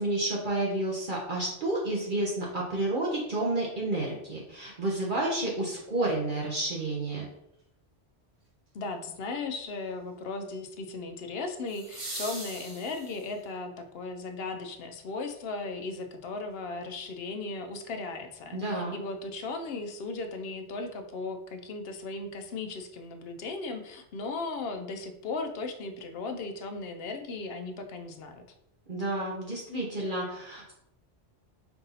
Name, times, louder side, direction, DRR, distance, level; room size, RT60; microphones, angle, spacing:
voice 1, 0.0-7.3 18.5-19.0 28.9-30.7, right 2 dB, 50° right, -3 dB, 0.9 m, -30 dB
sound 1, 6.1-6.2 11.7-13.5 15.6-15.7, right 1 dB, 80° right, 2.0 m, -41 dB
voice 2, 8.7-28.4, left 3 dB, 65° left, 7 dB, 0.7 m, -37 dB
4.6 x 2.6 x 4.0 m, 0.80 s
omnidirectional pair, 1.2 m